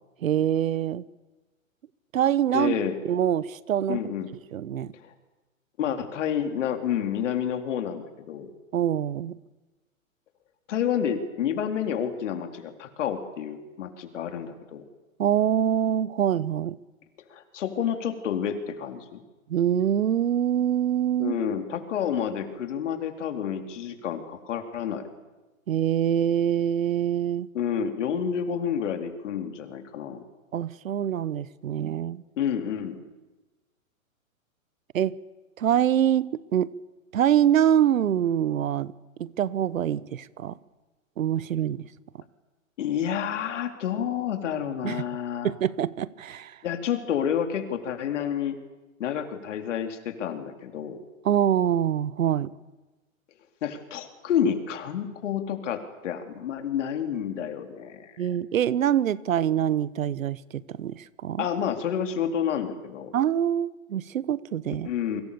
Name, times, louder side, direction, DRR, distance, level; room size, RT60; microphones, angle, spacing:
voice 1, 0.2-1.0 2.1-2.8 3.0-4.0 4.5-4.9 8.7-9.4 15.2-16.8 19.5-21.4 25.7-27.5 30.5-32.2 34.9-35.2 35.6-36.7 37.1-38.9 39.2-40.6 41.2-41.9 44.8-45.0 45.4-46.6 51.2-52.5 58.2-61.5 63.1-64.9, right 10 dB, 75° right, 1.2 m, -25 dB
voice 2, 2.5-3.0 3.9-4.3 4.9-5.1 5.8-8.5 10.7-14.8 17.3-19.2 21.2-25.1 27.5-30.2 32.4-33.0 42.8-45.5 46.6-48.6 49.0-51.0 53.6-58.2 61.4-63.1 64.8-65.2, left 8 dB, 60° left, 4.1 m, -29 dB
28.0 x 24.5 x 7.0 m
hypercardioid pair, 135°, 41 cm